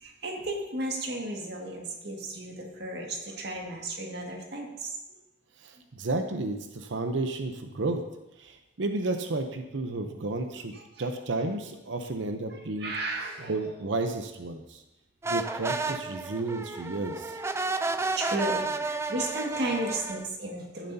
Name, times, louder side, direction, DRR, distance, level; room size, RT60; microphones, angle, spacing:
voice 1, 0.0-4.9 10.7-10.8 12.5-13.6 18.1-20.9, right 1 dB, 60° right, 0 dB, 1.9 m, -34 dB
voice 2, 5.6-8.0 8.4-10.7 11.0-12.9 13.5-14.8 15.3-17.4, right 2 dB, 80° right, 6 dB, 0.8 m, -32 dB
sound 1, 15.2-20.3, right 3 dB, 15° right, 0.4 m, -32 dB
15.5 x 7.3 x 2.8 m, 0.98 s
head